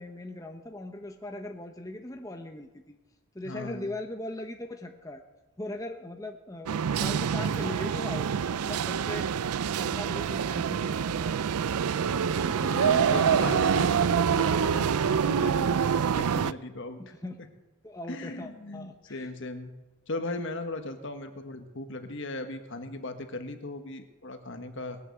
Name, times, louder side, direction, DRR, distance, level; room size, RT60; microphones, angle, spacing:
voice 1, 0.0-3.0 3.3-5.2 5.6-9.4 9.8-11.9 17.0-17.4 17.8-19.3, left 1 dB, 15° left, 4 dB, 1.0 m, -40 dB
voice 2, 3.4-3.9 12.7-17.1 18.1-19.7 20.1-25.0, left 2 dB, 55° left, 7 dB, 1.4 m, -38 dB
sound 1, 6.7-16.5, right 7 dB, 85° right, 0.4 m, -26 dB
Motorcycle, 11.5-16.0, right 3 dB, 60° right, 0.9 m, -35 dB
20.0 x 8.5 x 7.8 m, 1.1 s
head